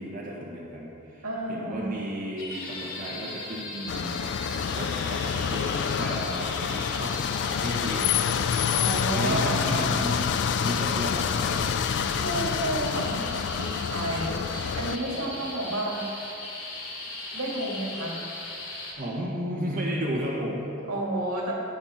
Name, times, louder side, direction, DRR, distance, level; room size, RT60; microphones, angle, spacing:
voice 1, 0.0-7.1 7.5-8.1 9.1-10.2 10.6-11.6 15.0-15.5 19.0-20.7, equal, 40° right, -5 dB, 1.6 m, -34 dB
voice 2, 1.2-2.0 8.8-9.9 12.1-14.4 14.7-16.0 17.3-18.2 20.9-21.5, right 1 dB, 75° right, -2 dB, 2.2 m, -31 dB
sound 1, 2.4-18.9, left 2 dB, 70° left, 2.9 m, -38 dB
sound 2, 3.9-15.0, left 7 dB, 50° left, 0.3 m, -27 dB
18.0 x 6.8 x 4.4 m, 2.8 s
head